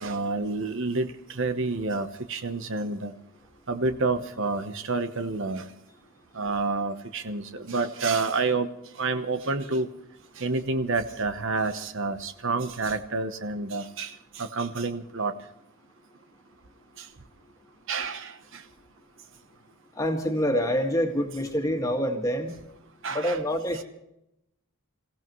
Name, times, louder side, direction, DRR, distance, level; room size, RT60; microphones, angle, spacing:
voice 1, 0.0-3.1 3.7-5.7 6.3-8.7 9.0-9.9 10.4-15.3 17.0-17.1 17.9-18.6 23.0-23.4 23.7-23.8, right 3 dB, 55° right, 9 dB, 1.0 m, -29 dB
voice 2, 19.9-22.5 23.1-23.8, equal, 15° left, 3 dB, 2.0 m, -26 dB
27.5 x 16.5 x 3.1 m, 0.81 s
head